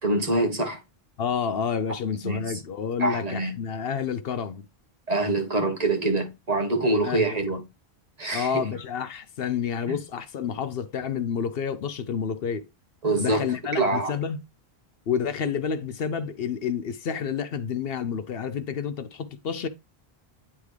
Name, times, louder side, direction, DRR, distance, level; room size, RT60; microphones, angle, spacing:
voice 1, 0.0-0.8 2.2-2.5 3.0-3.5 5.1-7.6 8.2-8.6 9.9-10.0 13.0-14.1, right 2 dB, 40° right, 1.4 m, -25 dB
voice 2, 1.2-4.6 7.0-7.4 8.3-12.7 13.2-14.4 15.1-19.7, left 7 dB, 70° left, 0.8 m, -29 dB
9.8 x 3.6 x 3.2 m
omnidirectional pair, 1.1 m